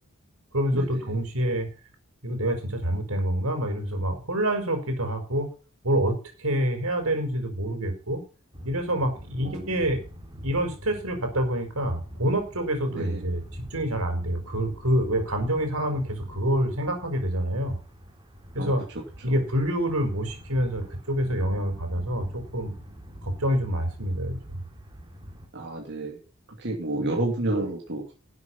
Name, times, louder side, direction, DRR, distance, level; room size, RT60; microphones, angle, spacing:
voice 1, 0.5-1.7 2.2-5.5 5.8-8.2 8.6-10.0 10.4-13.4 13.7-17.7 18.5-18.8 19.2-22.7 23.2-24.4, equal, 85° right, 5 dB, 4.8 m, -27 dB
sound 1, 8.5-25.5, equal, 25° right, 2.9 m, -44 dB
voice 2, 25.5-26.2 26.6-28.2, right 2 dB, 55° right, 0 dB, 2.8 m, -30 dB
12.0 x 7.9 x 5.6 m, 0.34 s
head